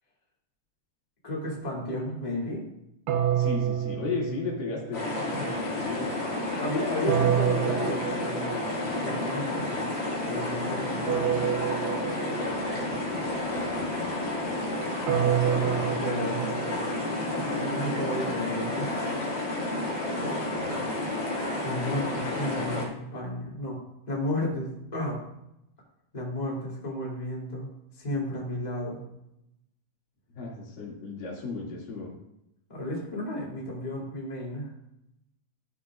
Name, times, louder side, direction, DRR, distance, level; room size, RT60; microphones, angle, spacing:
voice 1, 1.2-2.7 6.6-9.8 10.3-11.0 15.0-16.6 17.3-19.2 20.2-20.4 21.6-23.8 24.1-25.2 26.1-27.7 28.0-29.0 32.7-34.7, left 1 dB, 15° left, -5 dB, 2.4 m, -33 dB
sound 1, 3.1-5.1 7.1-8.9 11.1-12.9 15.1-17.3, right 10 dB, 85° right, 2.4 m, -28 dB
voice 2, 3.4-5.5 5.7-6.1 12.9-14.1 20.6-20.8 30.4-32.1, left 4 dB, 90° left, -4 dB, 4.2 m, -35 dB
sound 2, 4.9-22.9, left 2 dB, 70° left, 4.0 m, -31 dB
14.0 x 7.2 x 2.5 m, 0.84 s
omnidirectional pair, 3.8 m